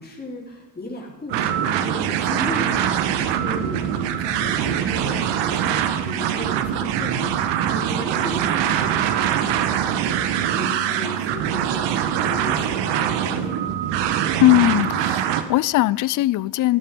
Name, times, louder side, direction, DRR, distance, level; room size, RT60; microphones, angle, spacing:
voice 1, 0.0-10.2 10.5-13.6, left 2 dB, 20° left, 4.8 m, -36 dB
sound 1, 1.3-15.4, right 9 dB, 60° right, 1.4 m, -23 dB
voice 2, 14.4-16.8, left 16 dB, 40° left, 0.5 m, -19 dB
15.5 x 12.5 x 5.3 m
hypercardioid pair, 65°, 49 cm